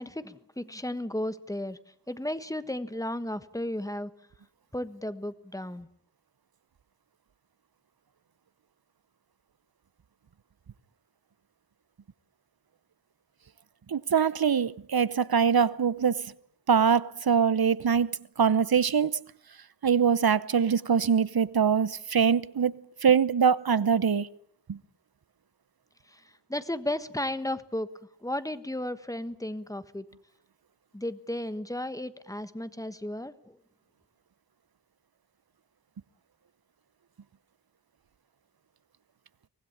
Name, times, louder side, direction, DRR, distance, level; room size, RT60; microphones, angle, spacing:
voice 1, 0.0-1.8 2.1-4.1 4.7-5.9 26.5-27.9 28.2-30.0 30.9-33.6, left 1 dB, 10° left, 1.3 m, -34 dB
voice 2, 13.9-16.3 16.7-18.1 18.4-19.2 19.8-22.7 23.0-24.3 24.7-24.8, right 7 dB, 60° right, 0.9 m, -23 dB
24.5 x 19.0 x 8.7 m
wide cardioid pair, 80°, 41 cm